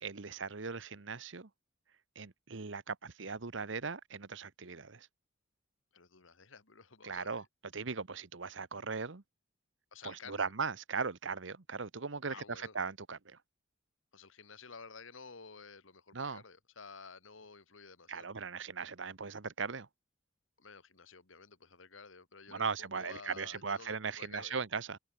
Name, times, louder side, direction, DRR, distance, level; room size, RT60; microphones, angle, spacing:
voice 1, 0.0-1.5 2.2-5.1 7.0-7.4 7.7-9.2 10.0-13.4 16.1-16.4 18.1-19.9 22.5-25.0, right 5 dB, 65° right, 1.1 m, -38 dB
voice 2, 5.9-7.4 9.9-10.5 12.3-12.7 14.1-18.3 20.6-24.6, left 5 dB, 75° left, 2.0 m, -52 dB
head